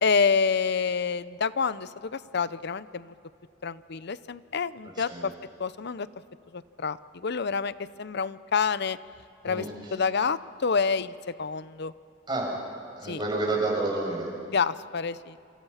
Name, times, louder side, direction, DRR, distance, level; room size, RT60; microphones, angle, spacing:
voice 1, 0.0-3.1 3.6-5.3 5.6-6.1 6.5-9.0 9.4-9.6 9.9-11.1 11.4-11.9 13.1-13.2 14.5-15.4, left 5 dB, 60° left, 16 dB, 0.7 m, -28 dB
voice 2, 5.0-5.3 9.4-9.9 12.3-12.5 13.0-14.3, right 2 dB, 25° right, -2 dB, 7.1 m, -30 dB
28.0 x 27.5 x 5.8 m, 2.5 s
head